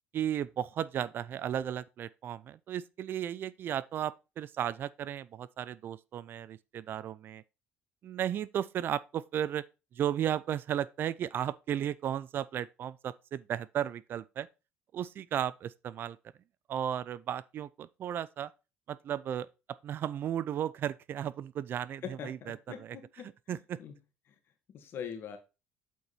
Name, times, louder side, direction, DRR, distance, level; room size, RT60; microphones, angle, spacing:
voice 1, 0.1-7.4 8.0-9.6 9.9-14.5 14.9-16.2 16.7-18.5 18.9-19.5 19.8-22.6 23.5-23.8, right 10 dB, 55° right, 0.4 m, -34 dB
voice 2, 22.0-23.9 24.3-24.4 24.7-25.4, left 8 dB, 55° left, 1.9 m, -43 dB
8.2 x 4.6 x 4.2 m
cardioid pair, 95°, 5 cm